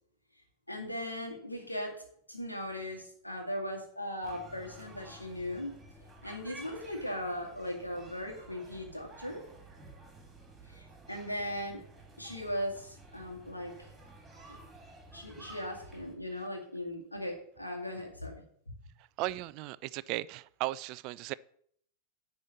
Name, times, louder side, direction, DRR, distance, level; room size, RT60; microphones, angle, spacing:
voice 1, 0.7-5.7 6.2-9.4 10.7-11.8 12.2-13.9 14.5-14.6 15.1-18.3, left 1 dB, 85° left, 2.2 m, -38 dB
sound 1, 4.2-16.1, right 2 dB, 15° right, 3.1 m, -52 dB
voice 2, 19.2-21.3, right 18 dB, 40° right, 0.3 m, -36 dB
10.5 x 4.3 x 7.4 m
figure-of-eight pair, 90°, 0 cm